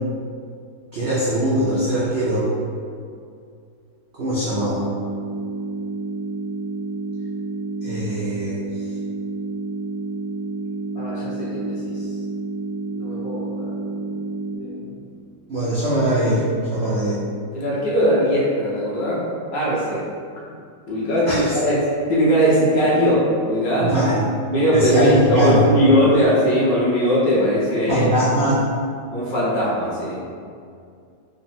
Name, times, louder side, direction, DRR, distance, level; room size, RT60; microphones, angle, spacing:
voice 1, 0.9-2.5 4.2-4.9 7.8-8.6 15.5-16.4 16.7-17.2 21.3-21.5 23.8-24.2 24.7-25.6 27.9-28.7, right 1 dB, 80° right, -9 dB, 0.5 m, -21 dB
sound 1, 4.5-14.6, right 2 dB, 65° right, 1.0 m, -29 dB
voice 2, 10.9-12.1 12.9-14.1 14.6-15.0 17.5-20.0 20.4-20.5 20.9-24.0 24.5-28.1 29.1-30.3, equal, 60° left, -6 dB, 1.1 m, -20 dB
3.7 x 2.0 x 4.1 m, 2.3 s
omnidirectional pair, 2.0 m